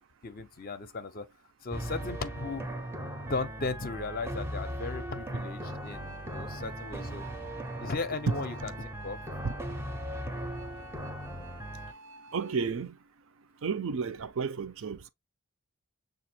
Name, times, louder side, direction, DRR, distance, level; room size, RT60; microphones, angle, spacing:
voice 1, 0.2-1.3 1.6-2.7 3.3-7.3 7.8-9.2, left 3 dB, 40° left, 0.5 m, -36 dB
sound 1, 1.7-11.9, right 1 dB, 10° right, 0.5 m, -38 dB
sound 2, 5.4-12.6, right 2 dB, 90° right, 1.0 m, -53 dB
voice 2, 12.3-13.0 13.6-15.1, right 5 dB, 60° right, 0.5 m, -32 dB
6.7 x 2.5 x 2.8 m
head